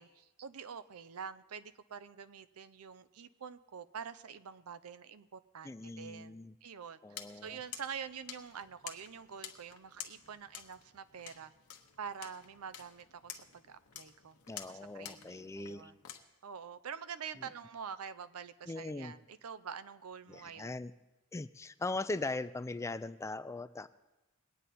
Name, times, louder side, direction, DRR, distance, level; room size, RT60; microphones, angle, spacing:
voice 1, 0.0-11.5 12.0-14.4 14.7-16.0 16.4-20.8, right 7 dB, 80° right, 13 dB, 0.6 m, -46 dB
voice 2, 5.6-6.5 7.0-7.6 14.5-15.9 17.4-17.5 18.7-19.1 20.3-20.9 21.3-23.9, left 2 dB, 15° left, 13 dB, 0.3 m, -40 dB
sound 1, 7.1-16.2, left 10 dB, 85° left, 1.1 m, -50 dB
21.0 x 9.1 x 4.2 m, 1.0 s
head